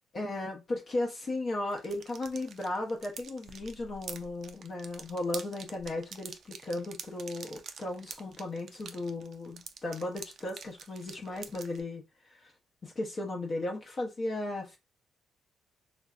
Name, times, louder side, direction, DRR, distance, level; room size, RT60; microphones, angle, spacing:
voice 1, 0.1-12.5 12.8-14.8, left 2 dB, 40° left, 0.8 m, -36 dB
sound 1, 1.7-11.8, right 6 dB, 60° right, 0.4 m, -46 dB
3.2 x 2.6 x 2.4 m
cardioid pair, 90°, 0 cm